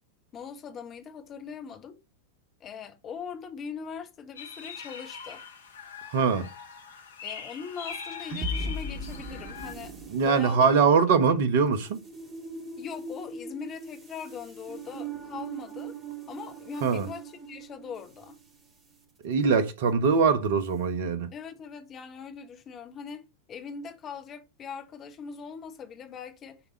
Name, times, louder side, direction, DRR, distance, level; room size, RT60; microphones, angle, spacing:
voice 1, 0.3-2.0 2.6-5.4 7.2-10.7 12.8-15.9 16.3-18.4 21.3-23.2 23.5-26.6, left 6 dB, 30° left, 1.4 m, -41 dB
sound 1, 4.4-9.7, left 6 dB, 65° left, 1.5 m, -41 dB
voice 2, 6.1-6.5 10.1-12.0 16.8-17.1 19.2-21.3, right 5 dB, 55° right, 1.1 m, -22 dB
sound 2, 7.9-18.4, right 2 dB, 25° right, 2.5 m, -39 dB
10.0 x 3.7 x 5.4 m
figure-of-eight pair, 90°, 0 cm